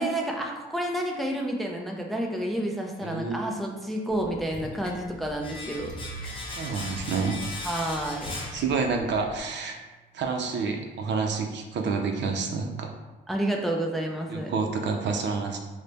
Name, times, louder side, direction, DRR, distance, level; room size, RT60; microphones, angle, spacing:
voice 1, 0.0-6.3 7.6-8.4 13.3-14.5, right 1 dB, ahead, 0 dB, 0.5 m, -30 dB
voice 2, 3.0-3.4 6.6-7.4 8.5-9.8 10.1-12.9 14.3-15.6, right 4 dB, 65° right, 3 dB, 0.5 m, -28 dB
Splash splatter, 4.1-9.4, equal, 75° left, 0.7 m, -43 dB
Domestic sounds home sounds, 5.4-9.2 9.5-9.6, left 2 dB, 25° left, 0.8 m, -38 dB
3.2 x 2.1 x 3.9 m, 1.2 s
cardioid pair, 90°, 20 cm